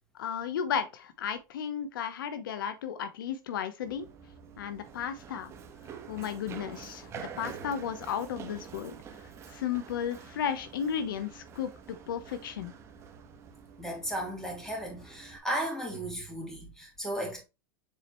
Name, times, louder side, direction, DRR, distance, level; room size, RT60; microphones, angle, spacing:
voice 1, 0.2-4.1 4.6-5.5 6.1-7.1 7.4-8.9 9.5-12.7, left 8 dB, 90° left, 1.0 m, -34 dB
Run, 3.8-15.4, right 7 dB, 25° right, 1.1 m, -47 dB
voice 2, 13.8-17.4, right 1 dB, 5° left, 2.8 m, -35 dB
7.4 x 4.3 x 3.1 m
supercardioid pair, 145°, 11 cm